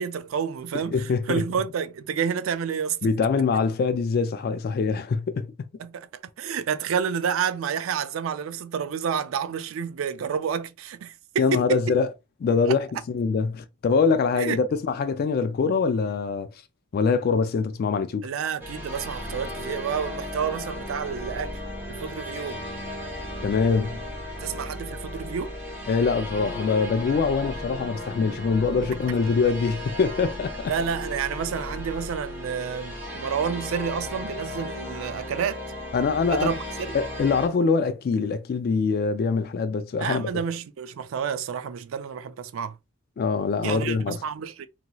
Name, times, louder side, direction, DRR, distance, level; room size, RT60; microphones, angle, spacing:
voice 1, 0.0-3.1 5.8-6.1 6.4-11.8 12.7-12.8 14.3-14.6 18.2-21.6 21.9-22.6 24.4-25.5 30.7-35.6 36.3-36.6 36.9-37.0 40.0-42.8 43.6-44.7, right 7 dB, 85° right, 0.4 m, -29 dB
voice 2, 0.9-1.4 3.0-5.5 11.4-12.1 12.4-16.5 16.9-18.3 23.4-24.0 25.9-30.7 35.9-36.6 36.9-40.3 43.2-44.2, left 5 dB, 50° left, 0.3 m, -24 dB
sound 1, 18.6-37.5, left 1 dB, 10° right, 1.5 m, -35 dB
3.0 x 2.7 x 2.2 m
head